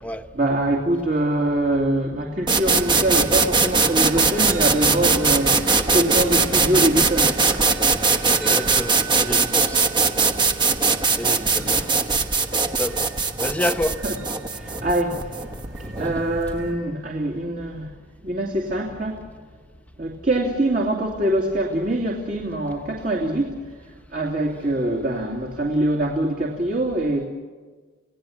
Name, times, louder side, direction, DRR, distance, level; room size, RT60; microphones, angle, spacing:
voice 1, 0.3-7.4 11.6-11.8 14.0-14.1 14.5-15.5 15.8-17.9 18.2-19.3 20.0-23.6 24.1-27.3, right 1 dB, 45° right, 2.6 m, -24 dB
sound 1, 2.5-16.2, right 4 dB, 25° right, 1.1 m, -20 dB
sound 2, 2.7-16.7, right 2 dB, 70° right, 4.8 m, -37 dB
voice 2, 8.4-9.8 11.1-11.8 12.8-13.0 13.4-14.0, left 1 dB, 5° left, 1.0 m, -28 dB
29.0 x 17.5 x 7.3 m
head